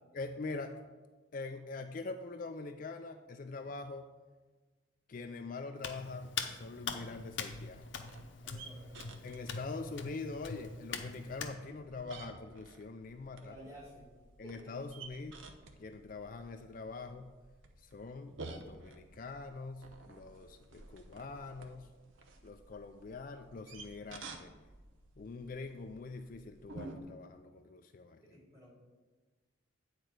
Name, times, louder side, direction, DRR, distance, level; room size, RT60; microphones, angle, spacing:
voice 1, 0.1-0.8 1.3-4.1 5.1-7.9 9.2-13.5 14.4-15.3 15.8-17.3 17.8-21.9 22.4-24.5 25.2-28.2, left 3 dB, 45° left, 6 dB, 0.4 m, -44 dB
Hands, 5.8-11.5, left 5 dB, 70° left, 0.8 m, -42 dB
sound 1, 7.0-27.0, right 3 dB, 85° right, 0.9 m, -53 dB
voice 2, 8.4-9.1 13.4-14.1 14.4-14.5 28.2-28.7, right 1 dB, 15° right, -6 dB, 3.0 m, -53 dB
9.0 x 4.4 x 6.4 m, 1.3 s
head